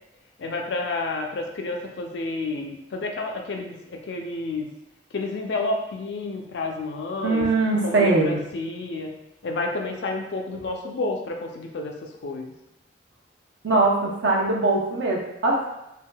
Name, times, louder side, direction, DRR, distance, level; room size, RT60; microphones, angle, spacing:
voice 1, 0.4-4.7 5.1-7.5 7.8-9.1 9.4-12.0 12.2-12.5, left 2 dB, 75° left, 2 dB, 0.5 m, -30 dB
voice 2, 7.2-8.4 13.6-15.7, right 3 dB, 85° right, -1 dB, 0.7 m, -21 dB
3.4 x 2.6 x 2.2 m, 0.89 s
head